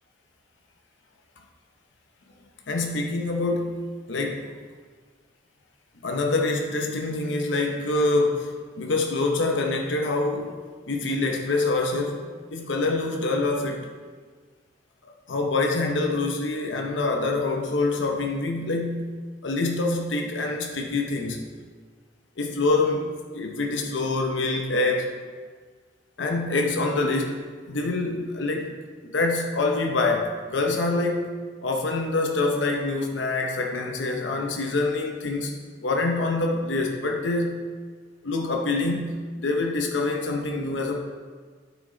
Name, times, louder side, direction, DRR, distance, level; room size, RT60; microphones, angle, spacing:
voice 1, 2.7-4.5 6.0-10.5 10.9-13.9 15.0-21.5 22.4-23.1 23.3-25.1 26.2-28.8 29.0-31.3 31.6-35.5 35.8-37.7 38.2-41.0, left 2 dB, 90° left, 2 dB, 0.8 m, -26 dB
9.1 x 6.1 x 3.9 m, 1.5 s
head